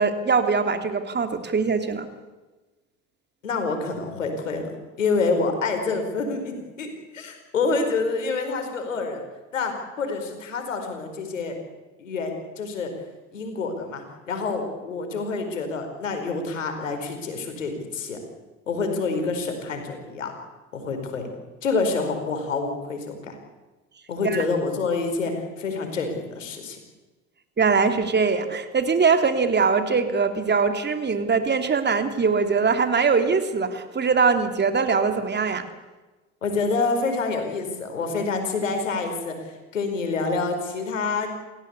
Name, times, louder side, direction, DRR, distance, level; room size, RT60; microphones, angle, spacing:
voice 1, 0.0-2.1 24.2-24.4 27.6-35.6, right 5 dB, 25° right, 7 dB, 3.1 m, -22 dB
voice 2, 3.4-4.7 5.0-9.2 9.5-11.6 12.0-12.9 13.3-18.2 18.7-20.3 20.7-21.3 21.6-23.4 24.1-26.8 36.4-41.3, left 4 dB, 85° left, 6 dB, 5.0 m, -27 dB
29.0 x 17.0 x 8.3 m, 1.2 s
hypercardioid pair, 70°, 37 cm